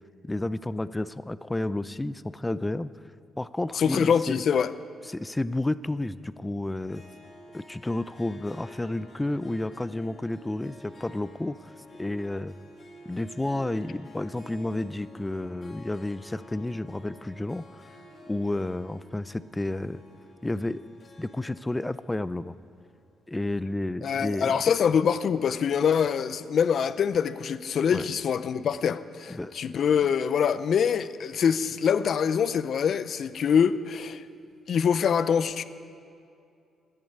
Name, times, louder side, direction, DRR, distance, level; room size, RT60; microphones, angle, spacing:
voice 1, 0.2-2.9 3.4-4.4 5.1-7.0 7.5-11.6 12.0-12.5 13.1-17.6 18.3-20.0 20.4-20.8 21.2-22.5 23.3-24.6 27.9-28.1 29.3-29.5, left 2 dB, 15° left, 0.5 m, -31 dB
voice 2, 3.7-4.7 24.0-34.2 34.7-35.6, left 7 dB, 60° left, 0.6 m, -24 dB
Harp, 6.8-23.3, equal, 45° left, 3.8 m, -50 dB
12.5 x 10.5 x 9.5 m
cardioid pair, 90°, 0 cm